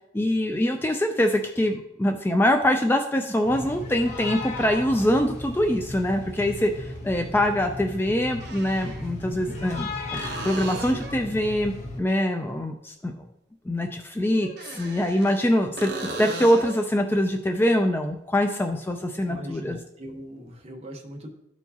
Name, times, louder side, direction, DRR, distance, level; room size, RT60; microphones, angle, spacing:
voice 1, 0.1-11.7 12.0-13.1 13.7-19.8, left 1 dB, 10° left, 4 dB, 0.3 m, -24 dB
sound 1, 3.4-12.0, left 2 dB, 40° left, 1.1 m, -36 dB
sound 2, 4.8-4.9 7.0-7.1 8.3-9.1 10.1-11.3 14.4-15.5 15.8-16.8 20.5-20.6, right 2 dB, 60° right, 0.9 m, -36 dB
voice 2, 19.2-21.3, equal, 35° right, 1 dB, 1.1 m, -39 dB
12.5 x 4.5 x 2.8 m, 0.83 s
head